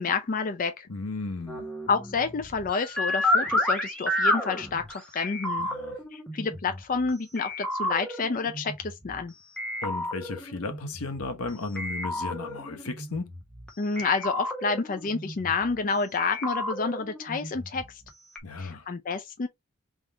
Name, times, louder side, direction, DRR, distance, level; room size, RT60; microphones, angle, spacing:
voice 1, 0.0-0.9 1.9-5.7 6.1-9.3 13.8-18.0 18.6-19.5, left 4 dB, 40° left, 0.4 m, -29 dB
voice 2, 0.9-1.7 5.6-6.0 9.8-13.3 18.4-18.9, left 3 dB, 80° left, 0.9 m, -35 dB
sound 1, 1.5-7.1 7.4-9.2 9.6-11.5 11.8-13.7 14.0-15.8 16.2-18.1 18.4-18.5, left 1 dB, 5° left, 1.1 m, -31 dB
3.6 x 2.5 x 4.4 m
head